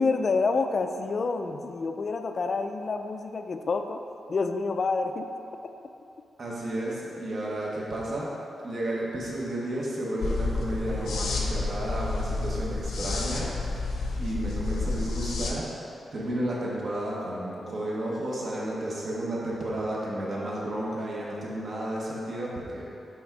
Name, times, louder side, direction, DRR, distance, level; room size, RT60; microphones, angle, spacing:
voice 1, 0.0-4.0 4.3-5.3, left 4 dB, 45° left, 7 dB, 0.3 m, -28 dB
voice 2, 6.4-8.4 8.6-13.8 14.2-15.7 16.1-22.9, right 1 dB, 50° right, -5 dB, 1.3 m, -32 dB
sound 1, 10.2-15.5, left 3 dB, 85° left, 0.7 m, -30 dB
6.1 x 4.0 x 4.6 m, 2.8 s
wide cardioid pair, 130°, 0 cm